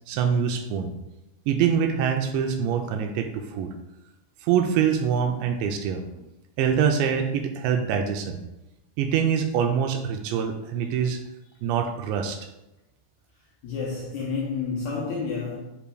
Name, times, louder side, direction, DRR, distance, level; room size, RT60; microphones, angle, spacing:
voice 1, 0.1-0.9 1.5-3.7 4.4-6.2 6.6-8.4 9.0-11.2 11.6-12.5, right 7 dB, 85° right, 2.7 m, -24 dB
voice 2, 13.6-15.6, left 4 dB, 85° left, 2.2 m, -30 dB
10.0 x 4.8 x 2.2 m
omnidirectional pair, 5.3 m